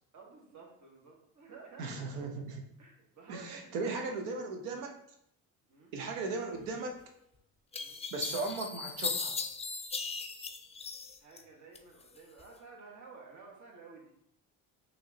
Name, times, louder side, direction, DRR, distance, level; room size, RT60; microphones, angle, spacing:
voice 1, 0.1-2.1 2.8-4.1 5.7-5.9 7.8-8.0 11.2-14.1, right 4 dB, 45° right, -1 dB, 1.6 m, -53 dB
voice 2, 1.8-2.6 3.3-5.0 5.9-7.0 8.1-9.4, right 3 dB, 85° right, 3 dB, 0.9 m, -37 dB
sound 1, 7.0-7.1 7.7-11.4 11.8-12.5, left 5 dB, 15° left, 0.4 m, -37 dB
5.7 x 3.0 x 2.9 m, 0.73 s
hypercardioid pair, 65°, 41 cm